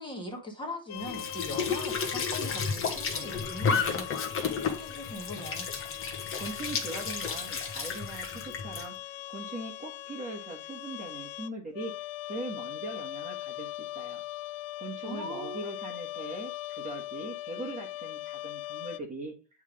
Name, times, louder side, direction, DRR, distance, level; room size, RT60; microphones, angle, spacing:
voice 1, 0.0-4.1 4.4-5.7 15.0-15.7, left 1 dB, 10° left, 1.8 m, -40 dB
sound 1, 0.9-19.0, left 15 dB, 65° left, 0.7 m, -41 dB
Squeak / Sink (filling or washing) / Trickle dribble, 1.0-8.9, left 5 dB, 30° left, 1.5 m, -32 dB
voice 2, 6.4-11.9 12.2-14.2 14.8-19.3, right 2 dB, 20° right, 1.5 m, -40 dB
9.1 x 3.7 x 5.0 m
cardioid pair, 155°, 43 cm